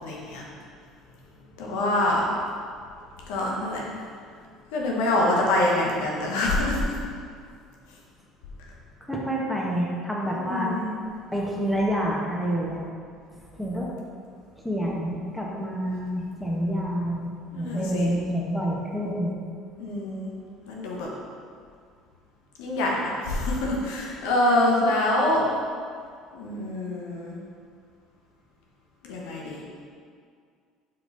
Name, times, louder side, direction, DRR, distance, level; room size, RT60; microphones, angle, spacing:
voice 1, 0.0-0.4 1.6-2.3 3.3-3.8 4.7-7.0 10.4-10.9 17.5-18.1 19.8-20.3 20.7-21.1 22.6-25.5 26.3-27.3 29.0-29.8, left 1 dB, 75° left, -2 dB, 1.1 m, -25 dB
voice 2, 9.0-10.7 11.3-12.8 13.6-13.9 14.6-19.4, equal, ahead, -3 dB, 1.3 m, -28 dB
5.2 x 4.8 x 4.1 m, 2.2 s
hypercardioid pair, 70°, 0 cm